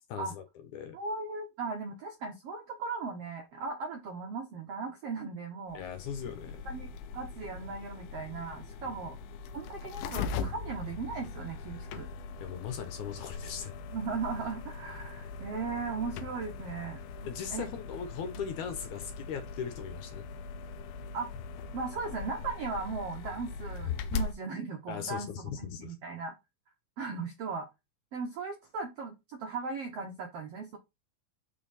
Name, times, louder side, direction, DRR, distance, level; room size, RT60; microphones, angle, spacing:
voice 1, 0.1-0.4 0.7-1.0 5.7-6.6 8.8-9.0 12.4-13.7 17.3-20.3 24.9-26.0, left 7 dB, 65° left, 2.3 m, -39 dB
voice 2, 0.9-5.8 6.6-6.9 7.1-9.2 9.5-12.1 13.8-17.0 17.5-17.7 21.1-21.3 21.7-25.3 25.6-26.3 27.0-27.7 28.1-30.8, right 4 dB, 70° right, 1.4 m, -37 dB
sound 1, 5.7-24.3, left 5 dB, 90° left, 2.4 m, -40 dB
7.0 x 5.6 x 4.2 m
omnidirectional pair, 4.1 m